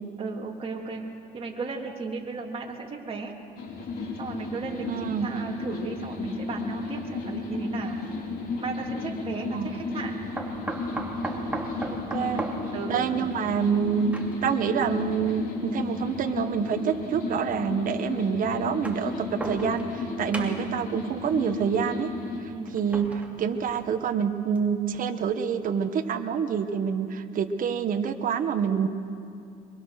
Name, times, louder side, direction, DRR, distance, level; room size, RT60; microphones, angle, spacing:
voice 1, 0.2-1.0 1.3-3.3 4.2-8.0 8.6-10.1 12.2-12.4 12.7-13.3 22.5-22.7, right 4 dB, 35° right, 0 dB, 3.1 m, -35 dB
sound 1, 3.6-22.4, left 3 dB, 60° left, 4.0 m, -33 dB
voice 2, 4.9-5.3 9.5-9.8 11.9-12.4 12.9-14.1 14.4-22.1 22.7-28.9, right 7 dB, 55° right, 7 dB, 1.2 m, -27 dB
sound 2, 7.9-8.1 10.4-14.6 15.6-15.7 16.9-17.0 18.6-20.0 20.3-20.8 22.7-24.1 24.6-24.7 25.0-25.1, right 2 dB, 10° right, 2.7 m, -37 dB
24.0 x 22.5 x 6.5 m, 2.5 s
cardioid pair, 110°, 17 cm